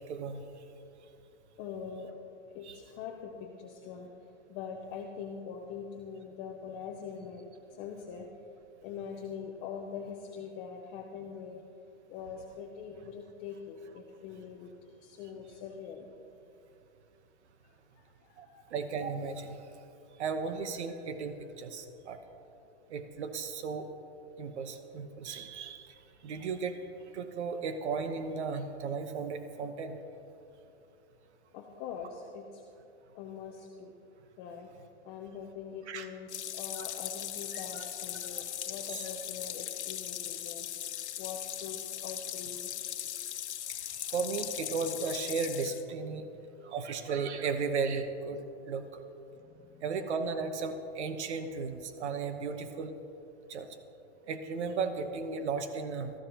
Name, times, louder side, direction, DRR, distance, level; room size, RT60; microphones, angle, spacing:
voice 1, 0.1-0.4 2.6-2.8 18.4-18.5 18.7-19.6 20.2-22.2 22.9-23.9 24.4-25.9 26.2-26.8 27.1-30.0 35.9-36.1 36.8-36.9 37.7-37.8 38.9-39.1 43.7-46.2 46.6-48.4 48.7-49.0 49.8-52.9 53.5-53.7 54.3-56.1, right 5 dB, 80° right, 8 dB, 1.1 m, -35 dB
voice 2, 1.6-2.1 2.5-4.1 4.5-7.4 7.8-8.3 8.8-11.6 12.1-14.7 15.0-16.1 17.6-17.7 18.2-18.6 31.5-32.6 33.1-33.9 34.4-34.7 35.0-40.7 41.2-42.7 49.4-49.8, left 6 dB, 15° left, 2 dB, 0.4 m, -43 dB
sound 1, 36.3-45.8, left 11 dB, 90° left, 1.0 m, -39 dB
19.5 x 14.0 x 2.9 m, 2.9 s
supercardioid pair, 155°, 33 cm